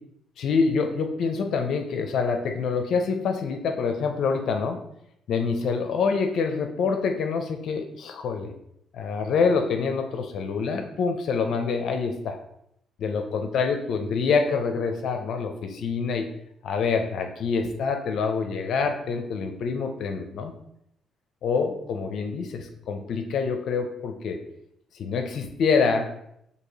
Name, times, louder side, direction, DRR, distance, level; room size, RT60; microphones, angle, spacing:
voice 1, 0.4-4.8 5.3-8.5 8.9-12.4 13.0-16.3 16.6-20.5 21.4-24.4 24.9-26.1, left 5 dB, 70° left, 5 dB, 0.5 m, -26 dB
4.6 x 2.8 x 3.9 m, 0.77 s
cardioid pair, 90°, 0 cm